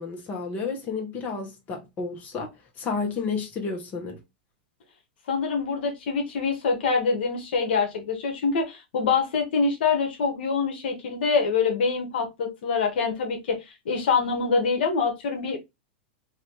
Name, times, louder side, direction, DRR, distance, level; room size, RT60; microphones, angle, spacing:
voice 1, 0.0-2.5 2.8-4.2, left 4 dB, 30° left, 1.3 m, -31 dB
voice 2, 5.3-13.6 13.8-15.6, left 5 dB, 75° left, 1.2 m, -25 dB
3.1 x 2.8 x 2.8 m
hypercardioid pair, 125°, 6 cm